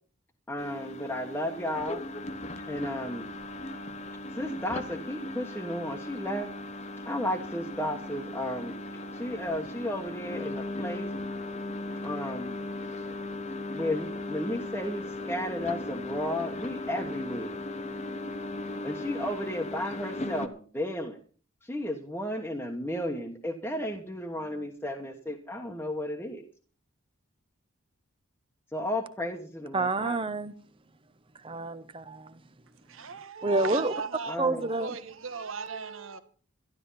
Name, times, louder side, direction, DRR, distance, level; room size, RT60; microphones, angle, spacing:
voice 1, 0.5-2.0 2.7-3.3 4.4-6.5 7.0-8.7 9.1-11.1 12.0-12.6 13.7-17.5 18.8-21.2 21.6-26.4 28.7-30.2 34.3-34.6, left 1 dB, 10° left, 1.2 m, -33 dB
sound 1, 0.6-20.5, left 2 dB, 30° left, 0.8 m, -37 dB
voice 2, 29.7-30.5 31.3-32.4 33.4-33.9 34.4-35.0, right 2 dB, 25° right, 0.7 m, -29 dB
voice 3, 32.9-36.2, right 4 dB, 75° right, 1.4 m, -38 dB
12.5 x 12.0 x 5.6 m
head